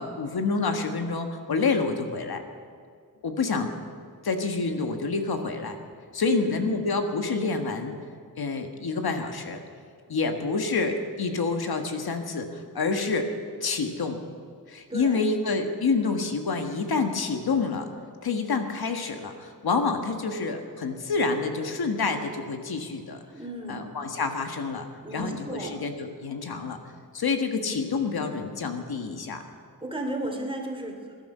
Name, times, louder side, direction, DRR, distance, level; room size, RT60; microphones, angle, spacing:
voice 1, 0.0-2.4 3.2-3.7 4.2-5.8 6.1-7.9 8.4-9.6 10.1-13.3 13.6-14.2 14.7-17.9 18.2-23.2 23.7-24.9 25.1-26.8 27.1-29.4, left 4 dB, 75° left, 5 dB, 1.6 m, -28 dB
voice 2, 6.2-6.8 14.9-15.2 23.3-23.8 25.0-25.7 29.8-31.2, right 1 dB, 15° right, 2 dB, 2.8 m, -34 dB
20.5 x 12.0 x 5.6 m, 2.2 s
wide cardioid pair, 100°, 37 cm